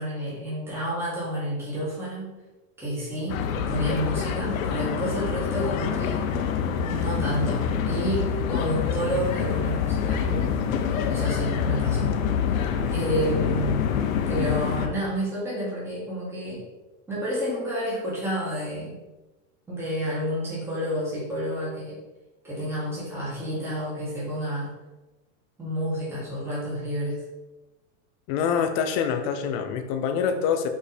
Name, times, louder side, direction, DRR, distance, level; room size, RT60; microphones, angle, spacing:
voice 1, 0.0-2.4 2.8-6.2 6.9-10.5 11.1-12.2 12.5-13.9 14.3-16.6 17.1-19.0 19.7-22.0 22.4-24.7 25.6-27.2, equal, 5° right, -9 dB, 1.9 m, -30 dB
sound 1, 3.3-14.9, left 7 dB, 90° left, 0.9 m, -26 dB
voice 2, 28.3-30.7, left 7 dB, 30° left, 6 dB, 0.4 m, -25 dB
5.1 x 5.0 x 4.3 m, 1.1 s
supercardioid pair, 165°, 40 cm